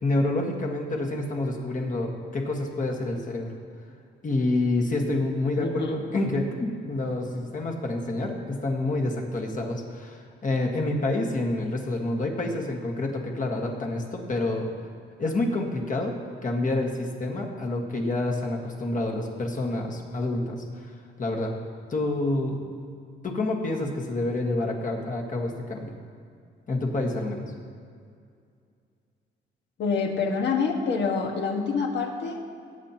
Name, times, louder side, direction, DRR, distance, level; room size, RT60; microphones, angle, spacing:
voice 1, 0.0-3.5 4.2-14.7 15.2-16.1 16.4-20.9 21.2-21.5 21.9-22.6 23.2-25.9 26.7-27.4, left 2 dB, 40° left, 1 dB, 1.7 m, -28 dB
voice 2, 5.6-6.0 29.8-32.4, left 5 dB, 60° left, 1 dB, 1.6 m, -26 dB
17.5 x 8.2 x 3.0 m, 2.3 s
cardioid pair, 90°, 20 cm